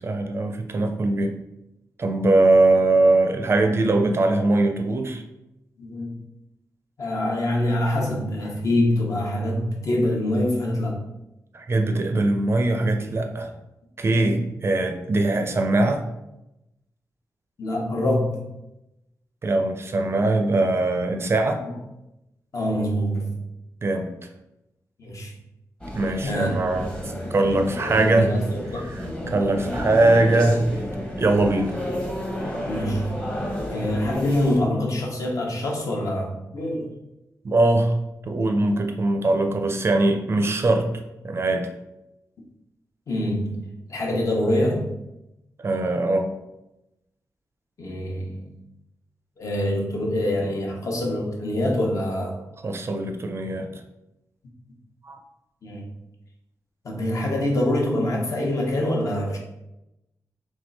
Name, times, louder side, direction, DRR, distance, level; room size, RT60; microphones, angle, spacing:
voice 1, 0.0-1.4 2.0-5.2 11.5-13.5 14.0-16.0 19.4-21.6 23.8-24.1 25.9-28.3 28.8-28.9 29.3-30.6 31.2-31.8 37.4-38.0 38.2-40.9 41.2-41.7 45.6-46.3 52.6-53.8 55.0-55.2, right 2 dB, 40° right, 5 dB, 0.4 m, -21 dB
voice 2, 5.8-6.2 7.0-11.0 14.2-14.5 17.6-18.4 21.6-21.8 22.5-23.4 25.0-25.3 26.2-26.5 27.8-29.8 32.7-33.2 33.7-36.9 43.1-44.9 47.8-48.5 49.4-52.4 55.6-55.9 56.8-59.4, left 1 dB, 55° left, -1 dB, 1.0 m, -25 dB
sound 1, 25.8-34.6, left 1 dB, 15° left, 0.9 m, -31 dB
3.5 x 3.2 x 4.0 m, 0.92 s
wide cardioid pair, 135°, 7 cm